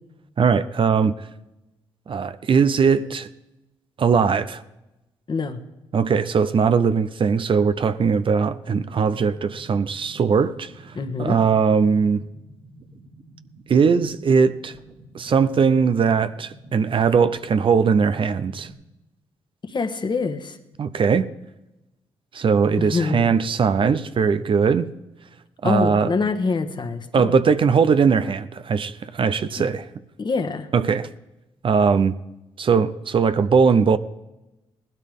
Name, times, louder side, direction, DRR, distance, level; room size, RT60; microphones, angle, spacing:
voice 1, 0.4-1.1 2.1-3.3 4.0-4.6 5.9-10.7 11.2-12.2 13.7-14.7 15.1-18.7 20.8-21.3 22.3-24.9 25.6-26.1 27.1-29.8 30.7-31.1 31.6-32.1 32.6-34.0, right 6 dB, 50° right, 0.7 m, -20 dB
voice 2, 5.3-5.6 10.9-11.4 19.6-20.6 22.8-23.3 25.6-27.4 29.6-29.7 30.2-30.7, left 4 dB, 40° left, 1.4 m, -25 dB
sound 1, 8.7-18.7, right 1 dB, 70° right, 3.9 m, -48 dB
18.0 x 12.5 x 3.7 m
supercardioid pair, 55°, 11 cm